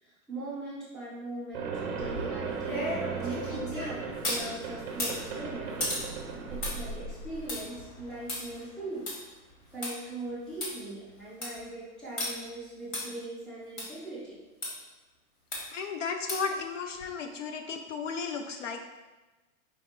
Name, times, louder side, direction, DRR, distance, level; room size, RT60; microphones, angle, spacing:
voice 1, 0.0-5.9 6.5-9.1 9.7-14.4, right 2 dB, ahead, -11 dB, 0.7 m, -40 dB
sound 1, 1.5-7.6, right 5 dB, 40° right, 0.7 m, -36 dB
sound 2, 2.0-4.5 4.9-9.9 10.3-10.4 10.6-10.7 11.2-11.6 12.2-12.3 12.9-13.0 13.8-13.9 14.6-14.7 15.5-15.8 16.3-16.6 17.0-17.1, left 1 dB, 35° left, 1.3 m, -36 dB
voice 2, 15.7-18.8, left 5 dB, 60° left, 6 dB, 0.5 m, -34 dB
5.1 x 2.3 x 4.3 m, 1.2 s
hypercardioid pair, 165°, 42 cm